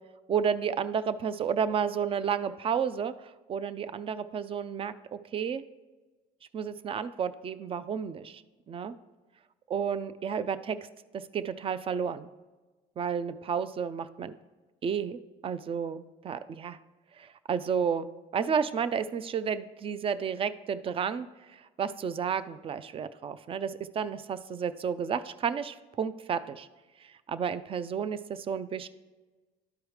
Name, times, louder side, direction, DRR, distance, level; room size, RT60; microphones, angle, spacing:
voice 1, 0.3-3.1 3.5-5.6 6.5-8.4 8.7-8.9 9.7-10.8 11.1-12.3 13.0-14.3 14.8-16.8 17.2-21.3 21.5-26.7 27.0-28.9, right 7 dB, 35° right, 14 dB, 0.4 m, -31 dB
12.0 x 4.7 x 3.2 m, 1.3 s
cardioid pair, 110°, 17 cm